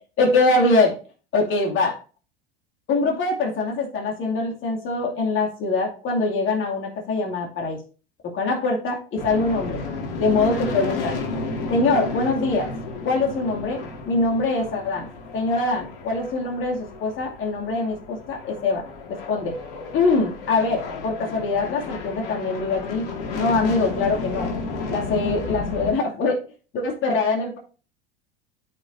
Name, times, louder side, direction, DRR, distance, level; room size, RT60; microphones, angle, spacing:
voice 1, 0.2-0.9 1.3-2.0 2.9-7.8 8.3-9.8 10.2-11.2 11.7-12.7 13.0-13.8 14.1-15.1 15.3-18.8 19.3-19.5 19.9-23.0 23.3-24.5 24.9-26.4 26.7-27.6, left 3 dB, 40° left, 0 dB, 2.5 m, -23 dB
sound 1, 9.2-25.9, left 3 dB, 65° left, 2.0 m, -32 dB
13.5 x 4.7 x 2.6 m, 0.37 s
hypercardioid pair, 85°, 30 cm